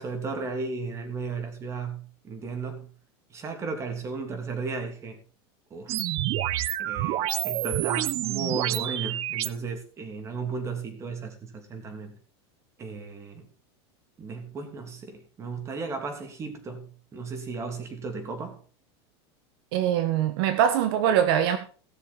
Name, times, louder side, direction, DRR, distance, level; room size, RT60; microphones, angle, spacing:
voice 1, 0.0-2.9 3.3-5.2 5.7-6.0 6.8-12.2 12.8-13.4 14.2-18.6, right 4 dB, 20° right, 3.0 m, -35 dB
sound 1, 5.9-9.5, right 14 dB, 45° right, 0.8 m, -28 dB
voice 2, 19.7-21.6, right 10 dB, 60° right, 1.6 m, -23 dB
17.5 x 7.1 x 4.5 m
supercardioid pair, 155°, 14 cm